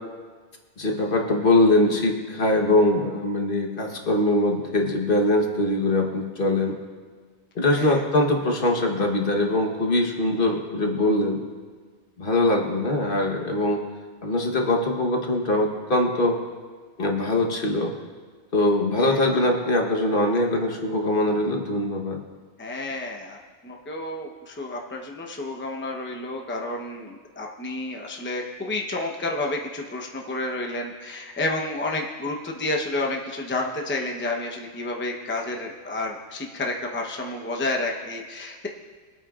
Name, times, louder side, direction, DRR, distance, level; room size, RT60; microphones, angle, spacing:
voice 1, 0.8-6.8 7.5-11.4 12.2-13.8 14.2-16.3 17.0-17.9 18.5-22.2, left 1 dB, 55° left, 1 dB, 1.4 m, -22 dB
voice 2, 7.6-8.0 19.0-19.2 22.6-38.7, left 2 dB, 10° left, 0 dB, 0.8 m, -30 dB
23.0 x 9.0 x 2.4 m, 1.5 s
omnidirectional pair, 1.1 m